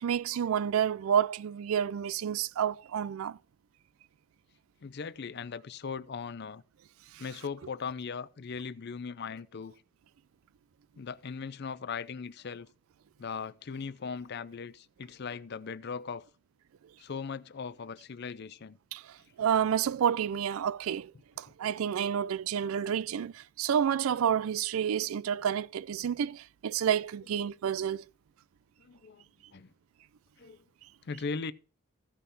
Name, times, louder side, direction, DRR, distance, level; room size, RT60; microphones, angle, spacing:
voice 1, 0.0-3.4 7.1-7.2 18.9-21.1 21.4-28.0, right 8 dB, 80° right, 0.4 m, -29 dB
voice 2, 4.8-6.6 7.2-9.7 11.0-12.7 13.2-16.2 17.0-18.8 28.8-29.2 29.5-29.7 30.4-30.6 31.1-31.5, left 5 dB, 50° left, 0.5 m, -39 dB
15.0 x 5.7 x 4.0 m
head